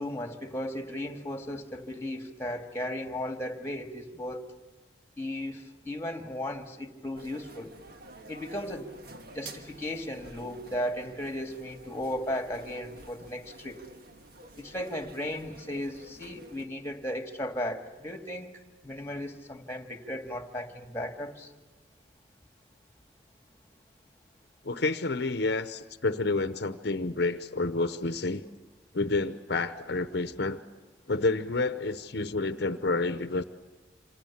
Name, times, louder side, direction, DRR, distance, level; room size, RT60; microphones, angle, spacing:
voice 1, 0.0-4.6 5.2-7.7 8.3-8.9 9.3-13.8 14.5-18.5 18.8-21.5, left 1 dB, 15° left, 5 dB, 1.9 m, -36 dB
sound 1, 7.2-16.7, right 2 dB, 55° right, 1.6 m, -50 dB
voice 2, 24.6-28.4 28.9-30.6 31.1-33.4, left 3 dB, 65° left, 10 dB, 0.9 m, -29 dB
27.0 x 26.5 x 7.2 m, 1.2 s
head